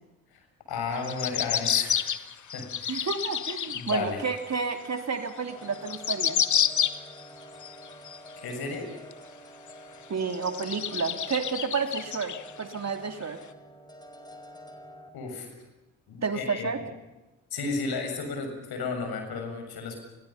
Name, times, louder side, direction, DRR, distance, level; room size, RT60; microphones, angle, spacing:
voice 1, 0.3-3.1 3.7-4.2 8.4-8.9 15.1-15.5 16.1-16.9 17.5-20.0, left 4 dB, 60° left, 5 dB, 7.0 m, -34 dB
sound 1, 0.9-4.1 4.5-4.6 5.4-5.5 5.7-7.2 7.6-8.5 9.1-9.2 9.7-9.8 10.3-12.8 13.2-13.3, left 9 dB, 45° left, 1.4 m, -29 dB
voice 2, 2.9-6.4 10.1-13.4 16.2-16.8, right 5 dB, 40° right, 7 dB, 2.9 m, -31 dB
sound 2, 5.5-15.1, right 1 dB, 10° left, 4.4 m, -48 dB
29.0 x 22.5 x 5.7 m, 1.1 s
hypercardioid pair, 45°, 41 cm